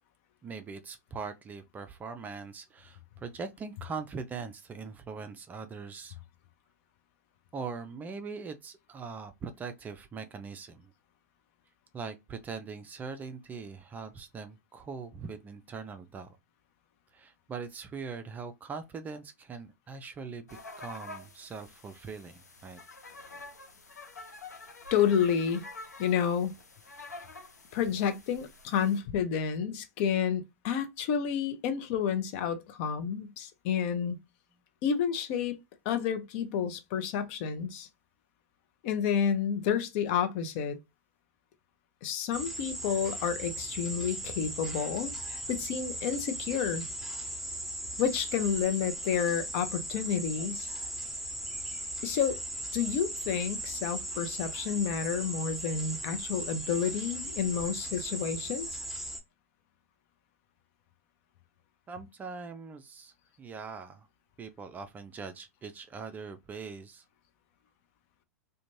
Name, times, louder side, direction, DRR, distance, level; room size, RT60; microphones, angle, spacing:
voice 1, 0.4-6.2 7.5-10.9 11.9-16.4 17.1-22.8 61.9-64.1 64.4-67.0, right 5 dB, 20° right, 0.4 m, -41 dB
sound 1, 20.5-29.0, left 3 dB, 85° left, 0.6 m, -48 dB
voice 2, 24.9-25.6 26.0-26.5 27.7-34.2 34.8-35.6 35.8-37.9 38.8-40.8 42.0-46.8 48.0-50.7 52.0-52.4 52.7-58.8, left 7 dB, 45° left, 0.6 m, -30 dB
sound 2, 42.3-59.2, right 1 dB, ahead, 0.9 m, -38 dB
2.5 x 2.2 x 3.0 m
figure-of-eight pair, 100°, 9 cm